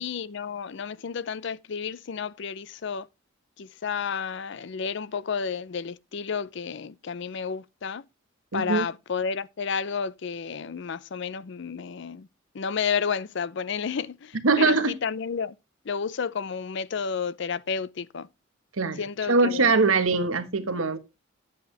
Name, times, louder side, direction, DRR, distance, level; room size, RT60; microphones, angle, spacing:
voice 1, 0.0-3.1 3.6-8.0 8.5-12.3 12.5-14.3 14.6-14.8 15.0-15.5 15.9-18.3 19.0-19.7, left 6 dB, 60° left, 0.5 m, -31 dB
voice 2, 8.5-8.9 14.4-15.0 18.8-21.0, right 3 dB, 85° right, 1.3 m, -22 dB
10.0 x 8.5 x 3.3 m
head